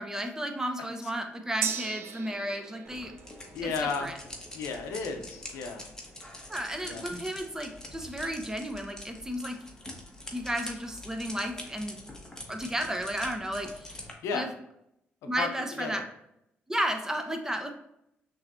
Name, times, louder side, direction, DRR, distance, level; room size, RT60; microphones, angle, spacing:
voice 1, 0.0-3.1 3.6-4.1 6.5-9.6 10.3-12.0 12.5-14.0 14.3-14.5 15.3-16.0 16.7-17.7, right 1 dB, 10° right, 5 dB, 0.8 m, -33 dB
Gong, 1.6-9.4 9.7-9.8, right 7 dB, 65° right, 0.4 m, -42 dB
sound 1, 2.8-14.1, left 1 dB, 15° left, 1.2 m, -45 dB
voice 2, 3.5-4.2 4.5-5.8 6.8-7.1 14.2-14.5 15.4-15.5 15.8-16.0, left 5 dB, 80° left, 5 dB, 0.6 m, -33 dB
5.8 x 3.1 x 2.6 m, 0.80 s
supercardioid pair, 55°, 5 cm